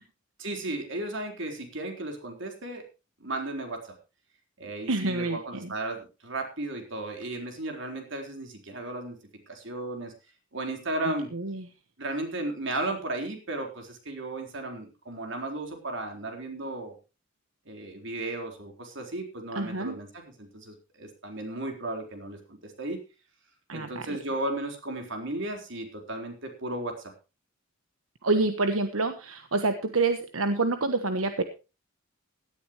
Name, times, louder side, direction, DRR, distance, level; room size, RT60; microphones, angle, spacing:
voice 1, 0.4-2.8 3.2-4.0 4.6-9.2 9.5-10.1 10.5-11.3 12.0-16.9 17.7-23.0 23.7-27.1, right 2 dB, 65° right, 3 dB, 4.1 m, -35 dB
voice 2, 4.9-5.7 11.3-11.6 19.5-19.9 23.7-24.0 28.2-31.4, right 3 dB, 85° right, 8 dB, 1.3 m, -27 dB
17.5 x 13.0 x 3.1 m, 0.30 s
head